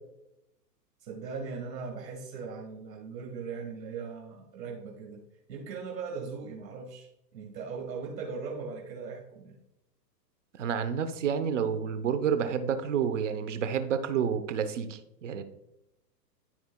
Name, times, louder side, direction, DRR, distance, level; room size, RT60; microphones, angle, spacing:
voice 1, 1.0-5.2 5.5-9.6, right 5 dB, 75° right, -1 dB, 2.0 m, -39 dB
voice 2, 10.6-15.4, right 7 dB, 45° right, 10 dB, 0.8 m, -29 dB
12.5 x 4.7 x 2.3 m, 0.87 s
hypercardioid pair, 160°, 50 cm